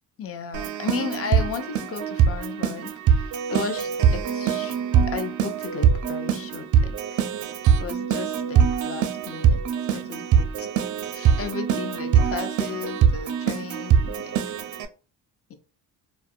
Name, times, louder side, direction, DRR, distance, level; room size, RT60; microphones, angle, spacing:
voice 1, 0.2-4.7 5.1-6.9 7.8-9.6 9.9-10.7 11.1-14.4 15.5-15.6, left 6 dB, 35° left, 8 dB, 0.5 m, -35 dB
Keyboard (musical), 0.5-14.9, right 8 dB, 50° right, 0.4 m, -23 dB
2.3 x 2.0 x 2.6 m, 0.36 s
cardioid pair, 80°, 40 cm